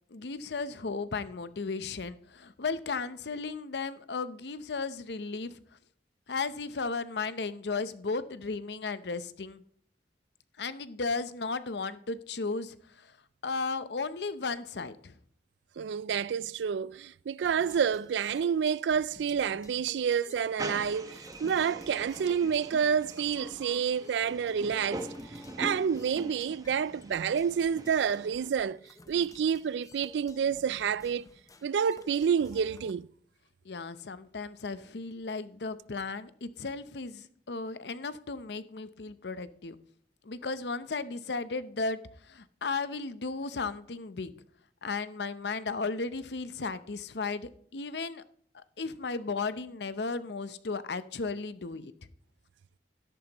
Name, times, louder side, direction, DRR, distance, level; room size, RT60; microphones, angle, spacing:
voice 1, 0.1-5.6 6.3-9.6 10.6-13.1 13.4-15.1 33.6-39.8 40.2-44.3 44.8-48.2 48.5-51.9, left 4 dB, 70° left, 0.7 m, -35 dB
voice 2, 15.8-25.1 25.6-28.8 29.1-31.3 31.6-33.1, right 7 dB, 80° right, 0.3 m, -29 dB
sound 1, 17.4-32.9, left 2 dB, 20° left, 0.7 m, -54 dB
sound 2, 20.6-28.5, right 1 dB, 20° right, 1.0 m, -43 dB
13.0 x 10.5 x 3.0 m
head